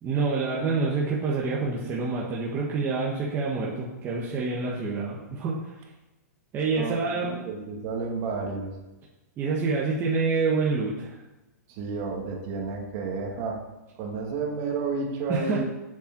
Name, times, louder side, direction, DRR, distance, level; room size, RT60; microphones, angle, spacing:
voice 1, 0.0-5.7 6.5-7.3 9.4-11.2 15.3-15.6, right 4 dB, 25° right, -5 dB, 1.6 m, -27 dB
voice 2, 6.8-8.7 11.7-13.6 14.0-15.6, right 4 dB, 40° right, 0 dB, 2.3 m, -31 dB
7.7 x 6.9 x 6.1 m, 1.0 s
hypercardioid pair, 145°, 9 cm